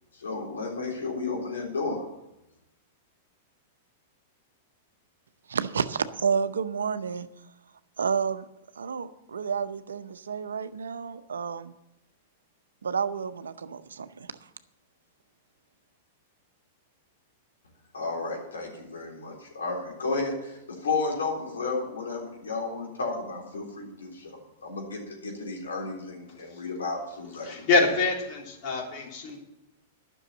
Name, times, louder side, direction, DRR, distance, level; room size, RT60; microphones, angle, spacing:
voice 1, 0.1-2.1 17.9-27.7, left 3 dB, 90° left, -1 dB, 3.8 m, -33 dB
voice 2, 5.5-7.3 8.0-8.5 8.8-11.7 12.8-14.3, right 6 dB, 85° right, 12 dB, 0.6 m, -30 dB
voice 3, 27.4-29.4, left 3 dB, 50° left, 0 dB, 3.1 m, -25 dB
11.0 x 6.3 x 8.7 m, 0.87 s
hypercardioid pair, 110°, 0 cm